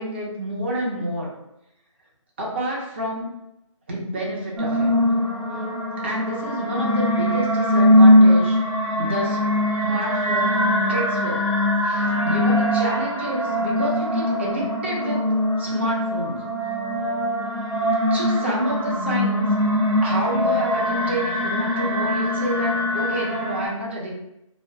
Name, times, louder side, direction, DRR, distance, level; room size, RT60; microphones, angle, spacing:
voice 1, 0.0-1.3 2.4-3.3 3.9-5.0 6.0-8.6 9.0-9.4 9.8-10.6 10.9-11.5 11.8-15.2 15.6-16.4 18.1-19.5 20.0-24.2, right 1 dB, 20° right, -4 dB, 0.4 m, -28 dB
sound 1, 4.6-23.7, left 1 dB, 85° right, 1.1 m, -21 dB
2.3 x 2.1 x 2.6 m, 0.84 s
figure-of-eight pair, 155°, 17 cm